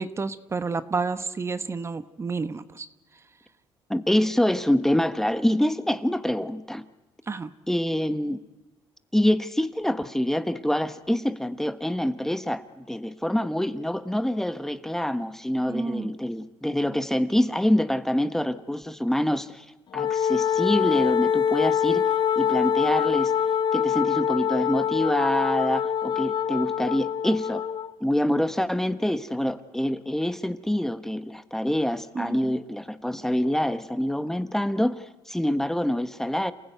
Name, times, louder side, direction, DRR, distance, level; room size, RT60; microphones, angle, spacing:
voice 1, 0.0-2.9 7.3-7.5 15.7-16.1 32.1-32.5, right 4 dB, 30° right, 12 dB, 1.1 m, -30 dB
voice 2, 3.9-6.8 7.7-8.4 9.1-19.7 19.9-23.3 23.7-27.7 28.0-36.5, left 1 dB, 5° left, 11 dB, 1.2 m, -26 dB
Wind instrument woodwind instrument, 19.9-27.9, left 8 dB, 55° left, 0.8 m, -24 dB
28.0 x 16.0 x 9.3 m, 1.1 s
cardioid pair, 85°, 9 cm